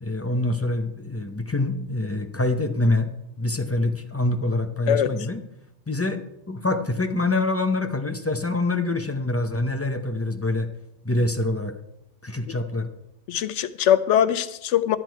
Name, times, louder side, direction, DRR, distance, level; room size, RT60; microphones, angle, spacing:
voice 1, 0.0-3.1 3.4-5.4 5.9-10.7 11.0-11.7 12.2-12.9, left 2 dB, 15° left, 0.6 m, -25 dB
voice 2, 13.3-15.0, left 10 dB, 80° left, 0.9 m, -21 dB
12.5 x 8.2 x 4.6 m
omnidirectional pair, 1.2 m